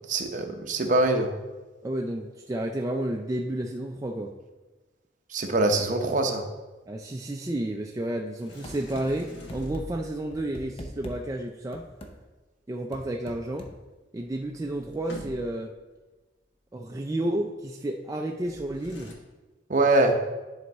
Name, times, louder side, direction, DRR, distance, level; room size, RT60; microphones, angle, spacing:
voice 1, 0.1-1.3 5.3-6.4 19.7-20.1, right 2 dB, 45° right, 4 dB, 0.7 m, -23 dB
voice 2, 1.8-4.3 6.9-11.9 12.7-13.7 14.1-15.7 16.7-19.1, right 1 dB, 20° right, 1 dB, 0.3 m, -31 dB
Sliding door, 8.4-10.3 13.9-14.0 14.2-15.8 18.4-19.1, equal, 75° left, 1.1 m, -44 dB
sound 1, 8.6-9.1 9.5-9.8 10.3-11.2 11.7-12.1 12.9-13.7, equal, 30° left, 0.7 m, -41 dB
10.5 x 4.1 x 3.5 m, 1.2 s
head